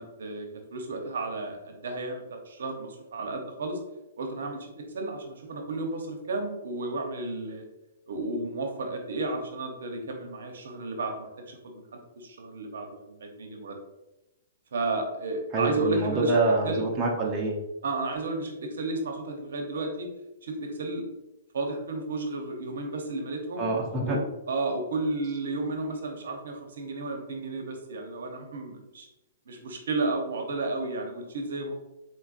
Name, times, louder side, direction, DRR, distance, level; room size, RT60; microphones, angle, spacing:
voice 1, 0.0-3.8 4.2-7.6 8.1-13.8 14.7-16.3 16.6-16.9 17.8-20.1 20.4-21.1 21.5-23.7 24.0-24.2 24.5-29.1 29.5-31.7, right 2 dB, 75° right, 3 dB, 0.9 m, -33 dB
voice 2, 15.5-17.6 23.6-24.2, right 2 dB, 20° right, -2 dB, 0.8 m, -26 dB
4.3 x 4.1 x 2.5 m, 0.97 s
hypercardioid pair, 150°, 0 cm